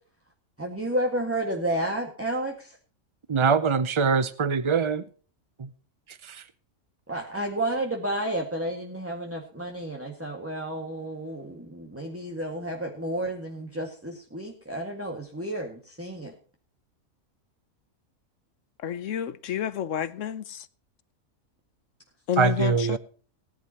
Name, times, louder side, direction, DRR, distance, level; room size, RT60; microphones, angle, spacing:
voice 1, 0.6-2.8 7.1-16.3, right 1 dB, 10° right, 1.9 m, -31 dB
voice 2, 3.3-5.0 5.6-5.7 6.1-6.4 22.4-23.0, right 5 dB, 40° right, 0.4 m, -23 dB
voice 3, 18.8-20.7 22.3-23.0, left 9 dB, 70° left, 1.2 m, -30 dB
19.0 x 11.0 x 2.9 m
omnidirectional pair, 1.4 m